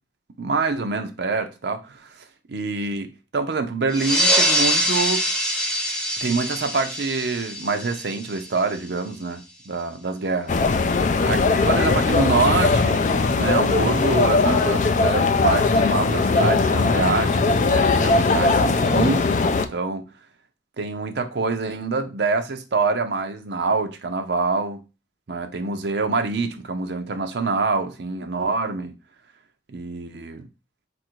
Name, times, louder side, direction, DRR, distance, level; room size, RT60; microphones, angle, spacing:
voice 1, 0.4-2.1 2.5-5.3 6.2-10.6 11.2-13.0 13.3-20.1 20.8-24.8 25.3-29.0 29.7-30.5, right 4 dB, 60° right, 0.5 m, -25 dB
sound 1, 3.9-9.0, equal, 5° left, 0.8 m, -24 dB
sound 2, 10.5-19.7, left 3 dB, 40° left, 0.4 m, -19 dB
4.2 x 2.5 x 4.4 m
head